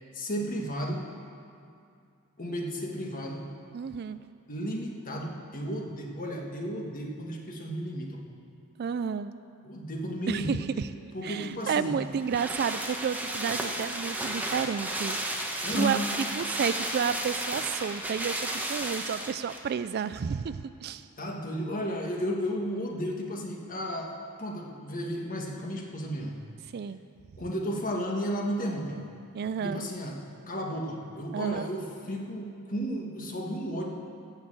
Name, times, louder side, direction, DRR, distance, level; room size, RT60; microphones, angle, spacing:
voice 1, 0.1-1.1 2.4-3.4 4.5-8.2 9.6-10.6 11.1-12.0 15.6-16.0 21.2-24.1 24.4-26.4 27.4-29.0 29.6-30.2 30.5-33.9, equal, 40° left, 0 dB, 1.6 m, -33 dB
voice 2, 3.7-4.2 8.8-9.3 10.3-10.9 11.2-21.1 26.7-27.0 29.3-29.8 31.3-31.7, right 6 dB, 45° right, 13 dB, 0.3 m, -31 dB
sound 1, 11.5-19.7 20.0-20.1, right 1 dB, 10° right, 1.0 m, -33 dB
15.5 x 6.6 x 7.6 m, 2.4 s
head